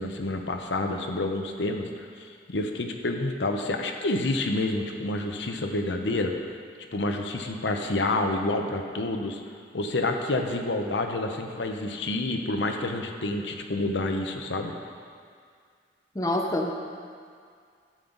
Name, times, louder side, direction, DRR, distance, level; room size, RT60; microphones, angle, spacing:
voice 1, 0.0-6.6 6.9-9.4 9.7-14.7, left 2 dB, 90° left, 4 dB, 0.8 m, -28 dB
voice 2, 16.1-16.9, left 1 dB, 20° left, 1 dB, 0.7 m, -27 dB
13.0 x 7.6 x 3.9 m, 2.1 s
head